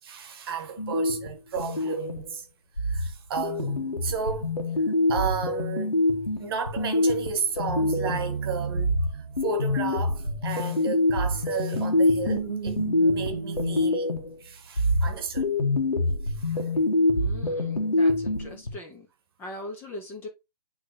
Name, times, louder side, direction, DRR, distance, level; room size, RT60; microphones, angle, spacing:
voice 1, 0.0-2.5 2.8-4.8 5.1-6.0 6.4-15.5 16.2-16.7, right 6 dB, 40° right, 1.4 m, -34 dB
sound 1, 0.8-2.3 2.8-8.4 8.8-14.4 14.8-18.7, left 2 dB, 80° left, 1.6 m, -26 dB
sound 2, 3.6-4.3 7.7-10.8 11.2-13.9, right 6 dB, 60° right, 0.9 m, -35 dB
voice 2, 17.1-19.1 19.4-20.3, left 1 dB, 10° left, 1.0 m, -40 dB
9.8 x 3.5 x 2.9 m
figure-of-eight pair, 135°, 20 cm